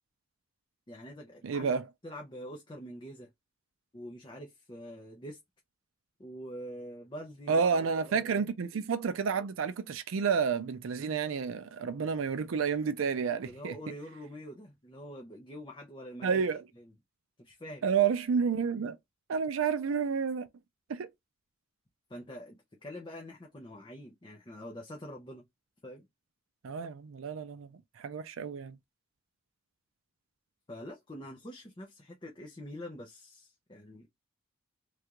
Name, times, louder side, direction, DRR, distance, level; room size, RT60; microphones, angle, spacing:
voice 1, 0.9-1.7 2.0-3.3 3.9-5.4 6.2-7.6 8.0-8.5 13.4-16.4 17.4-17.8 22.1-25.5 25.8-26.1 30.7-34.1, equal, 25° left, 0.7 m, -45 dB
voice 2, 1.4-1.9 7.5-13.7 16.2-16.6 17.8-19.0 19.3-20.5 20.9-21.1 26.6-27.7 28.0-28.8, right 6 dB, 80° right, 0.4 m, -30 dB
3.3 x 2.4 x 2.9 m
head